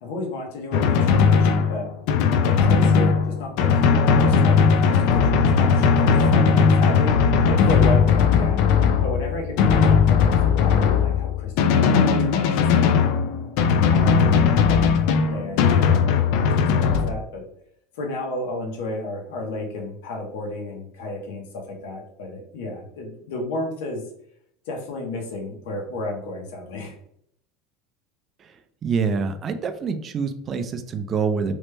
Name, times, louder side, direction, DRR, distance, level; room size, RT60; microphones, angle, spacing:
voice 1, 0.0-1.9 2.4-8.6 9.0-12.9 13.8-16.5 16.8-17.4 17.9-24.0 24.7-27.0, left 2 dB, 80° left, 0 dB, 0.8 m, -32 dB
Drum, 0.7-17.1, left 6 dB, 65° left, 0.3 m, -18 dB
voice 2, 28.8-31.5, right 5 dB, 30° right, 8 dB, 0.3 m, -26 dB
3.1 x 2.1 x 3.2 m, 0.72 s
supercardioid pair, 135°, 0 cm